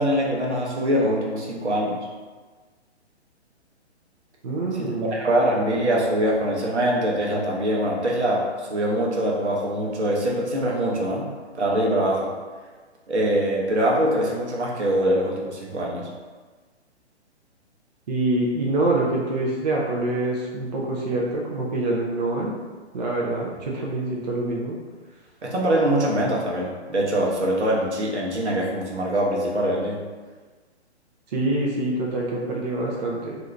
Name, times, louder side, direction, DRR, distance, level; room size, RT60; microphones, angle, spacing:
voice 1, 0.0-2.0 4.8-11.3 11.5-12.3 13.1-16.0 25.4-30.0, right 1 dB, 75° right, -2 dB, 0.9 m, -23 dB
voice 2, 4.4-5.4 18.1-22.6 22.9-24.8 31.3-33.4, right 2 dB, 40° right, -3 dB, 0.5 m, -25 dB
2.7 x 2.5 x 3.2 m, 1.4 s
figure-of-eight pair, 130°, 34 cm